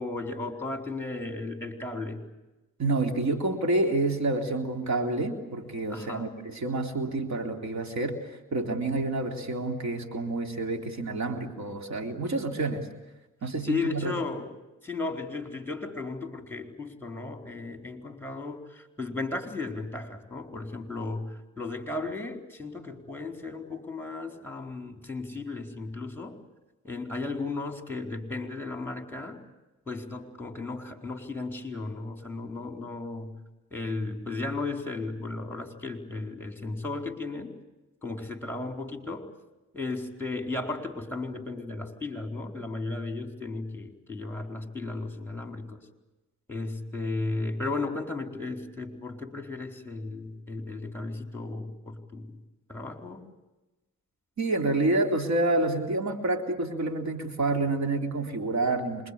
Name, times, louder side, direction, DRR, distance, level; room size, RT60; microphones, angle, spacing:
voice 1, 0.0-2.2 5.9-6.3 11.5-11.6 13.6-14.5 14.8-26.4 26.8-29.4 29.9-33.3 33.7-37.6 38.0-39.3 39.7-45.8 46.5-52.4 52.7-53.3, left 3 dB, 5° left, 5 dB, 4.4 m, -35 dB
voice 2, 2.8-12.9 13.4-14.1 54.4-59.1, right 2 dB, 60° right, 4 dB, 3.6 m, -28 dB
26.5 x 23.0 x 8.6 m, 1.0 s
cardioid pair, 70°, 31 cm